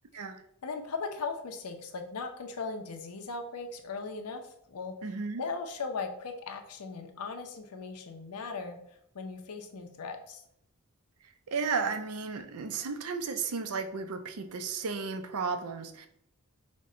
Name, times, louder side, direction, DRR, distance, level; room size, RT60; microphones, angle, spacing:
voice 1, 0.6-4.9 5.4-8.8 9.1-10.4, left 4 dB, 80° left, 5 dB, 0.6 m, -38 dB
voice 2, 5.0-5.4 11.2-16.1, right 5 dB, 80° right, 9 dB, 0.5 m, -34 dB
5.2 x 2.2 x 3.7 m, 0.72 s
head